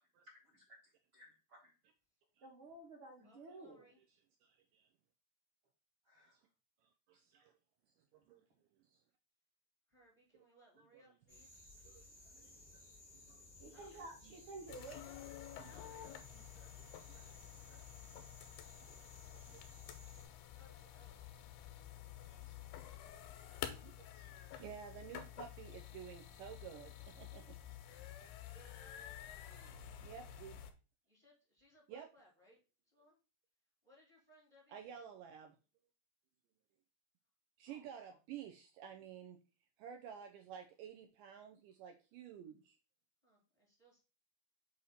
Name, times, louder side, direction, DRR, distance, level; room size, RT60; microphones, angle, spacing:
voice 1, 0.3-1.7 2.4-3.8 6.0-6.4 13.6-15.0, right 2 dB, 55° right, 1.4 m, -53 dB
voice 2, 3.2-4.0 9.9-11.7 13.7-13.9 15.7-16.2 20.5-23.0 28.5-30.1 31.0-32.6 32.8-33.2 33.8-35.0 37.6-38.2 43.2-44.0, equal, 20° right, 0.8 m, -67 dB
voice 3, 4.4-4.9 6.2-6.4 6.8-7.5 7.9-8.5 8.8-9.0 11.9-12.1 12.4-12.5 13.3-13.4 14.2-14.3 15.5-15.7 16.3-17.3 17.7-17.9 19.3-19.7 22.3-22.6 23.5-27.6 30.0-30.6 31.9-32.1 34.7-35.6 37.6-39.4 39.8-42.8, right 8 dB, 85° right, 1.9 m, -53 dB
sound 1, 11.3-20.2, left 2 dB, 60° left, 0.4 m, -59 dB
sound 2, 14.7-30.7, left 11 dB, 85° left, 2.6 m, -51 dB
6.4 x 2.8 x 5.5 m
omnidirectional pair, 4.4 m